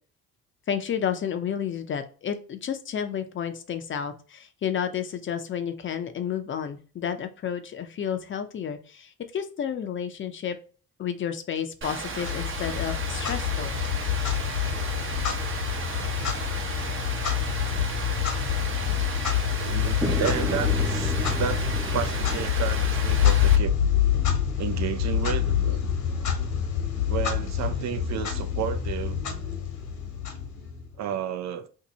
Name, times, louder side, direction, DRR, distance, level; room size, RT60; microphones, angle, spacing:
voice 1, 0.7-10.6 11.0-13.7, left 8 dB, 40° left, 0.5 m, -31 dB
Rain, 11.8-23.6, right 4 dB, 45° right, 0.8 m, -34 dB
Clock, 12.2-30.9, left 9 dB, 80° left, 1.0 m, -26 dB
voice 2, 19.4-23.7 24.6-25.8 27.1-29.2 31.0-31.7, right 9 dB, 65° right, 0.4 m, -32 dB
sound 1, 20.0-23.9, right 1 dB, 10° right, 0.5 m, -34 dB
2.7 x 2.6 x 3.9 m
cardioid pair, 90°, 30 cm